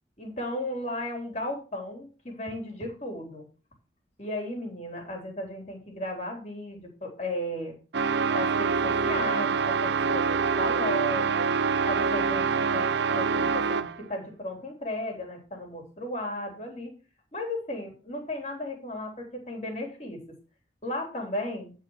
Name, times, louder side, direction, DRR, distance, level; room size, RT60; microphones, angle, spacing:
voice 1, 0.2-3.5 4.2-7.8 8.3-11.5 11.9-16.9 17.3-20.2 20.8-21.7, left 1 dB, 35° left, 2 dB, 3.2 m, -35 dB
sound 1, 7.9-14.0, right 5 dB, 70° right, 0.6 m, -25 dB
10.5 x 4.7 x 6.2 m, 0.34 s
head